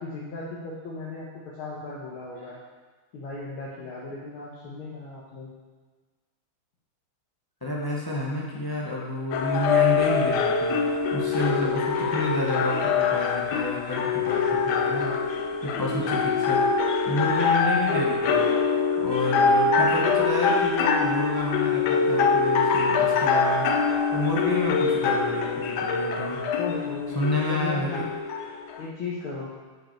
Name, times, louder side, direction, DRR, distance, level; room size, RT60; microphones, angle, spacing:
voice 1, 0.0-2.6 3.1-5.5 26.6-28.1 28.8-29.5, left 3 dB, 90° left, -5 dB, 1.9 m, -36 dB
voice 2, 7.6-15.2 15.6-16.6 17.1-18.4 19.0-23.7 24.1-26.4 27.1-28.0, left 1 dB, 35° left, -3 dB, 0.3 m, -29 dB
sound 1, 9.3-28.9, left 5 dB, 75° left, 1.0 m, -24 dB
8.9 x 5.1 x 4.5 m, 1.4 s
omnidirectional pair, 2.2 m